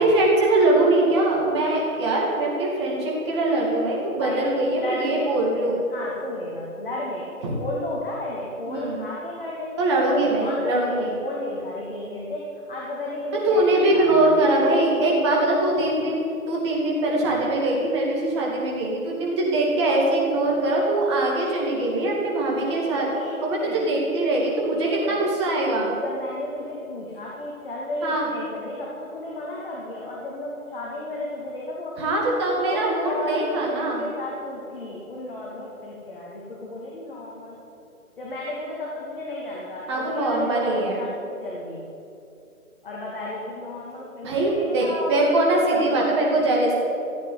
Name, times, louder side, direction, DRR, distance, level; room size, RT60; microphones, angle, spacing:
voice 1, 0.0-5.8 7.4-7.5 8.7-9.1 9.8-11.2 13.4-16.2 16.5-23.1 23.4-25.9 28.0-28.3 32.0-34.0 39.9-41.0 44.2-46.8, right 2 dB, 20° right, -3 dB, 2.5 m, -22 dB
voice 2, 4.2-5.3 5.9-9.8 10.1-13.6 13.9-14.5 22.6-23.8 24.8-25.2 26.0-32.1 32.7-37.6 38.2-41.9 42.8-45.3 45.7-46.3, left 1 dB, 35° left, -4 dB, 2.6 m, -33 dB
15.5 x 8.4 x 9.6 m, 2.7 s
hypercardioid pair, 165°, 44 cm